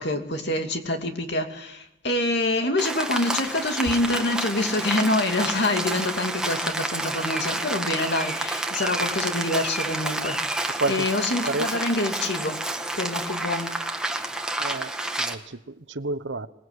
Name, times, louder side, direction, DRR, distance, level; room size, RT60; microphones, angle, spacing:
voice 1, 0.0-12.6 12.9-13.7, left 2 dB, 65° left, 2.8 m, -26 dB
Rain, 2.8-15.3, right 2 dB, 5° right, 1.7 m, -29 dB
voice 2, 10.8-11.8 14.6-14.9 15.2-16.5, right 2 dB, 75° right, 1.1 m, -30 dB
25.5 x 20.0 x 8.3 m
head